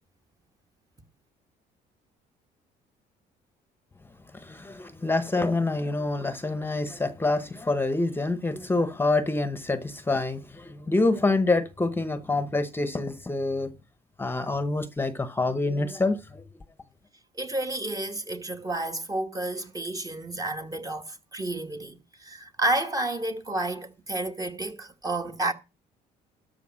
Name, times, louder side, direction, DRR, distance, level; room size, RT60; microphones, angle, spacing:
voice 1, 4.3-13.7 14.2-16.4, left 2 dB, 15° left, 0.9 m, -26 dB
voice 2, 17.3-25.5, right 2 dB, 20° right, 1.2 m, -31 dB
13.0 x 5.2 x 6.3 m
cardioid pair, 110°, 17 cm